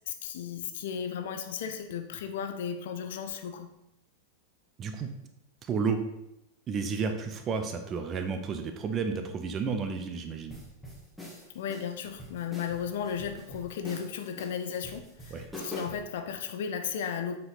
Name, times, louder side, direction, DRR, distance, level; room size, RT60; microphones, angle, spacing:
voice 1, 0.1-3.7 11.5-17.4, left 7 dB, 55° left, 7 dB, 0.7 m, -35 dB
voice 2, 4.8-5.1 5.6-6.0 6.7-10.6 15.3-15.4, right 5 dB, 30° right, 7 dB, 0.8 m, -31 dB
sound 1, 10.5-16.1, equal, ahead, 1.9 m, -44 dB
7.6 x 4.8 x 4.0 m, 0.87 s
figure-of-eight pair, 90°, 0 cm